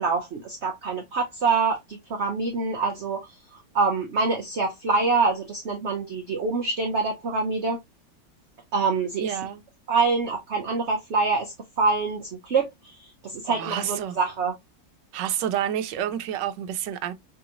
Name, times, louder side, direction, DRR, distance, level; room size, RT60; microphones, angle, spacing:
voice 1, 0.0-3.4 3.7-7.8 8.7-9.4 9.9-14.5, right 4 dB, 55° right, 0.8 m, -25 dB
voice 2, 9.2-9.6 13.5-14.1 15.1-17.1, right 10 dB, 75° right, 1.3 m, -29 dB
5.3 x 2.9 x 2.4 m
omnidirectional pair, 2.0 m